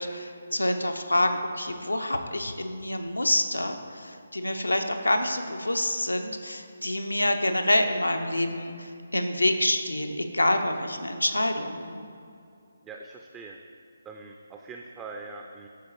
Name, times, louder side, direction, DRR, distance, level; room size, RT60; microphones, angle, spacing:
voice 1, 0.0-12.1, left 1 dB, 90° left, 6 dB, 0.6 m, -27 dB
voice 2, 12.8-13.6 14.0-15.7, right 4 dB, 15° right, 2 dB, 0.3 m, -42 dB
11.5 x 3.9 x 3.1 m, 2.5 s
figure-of-eight pair, 150°, 0 cm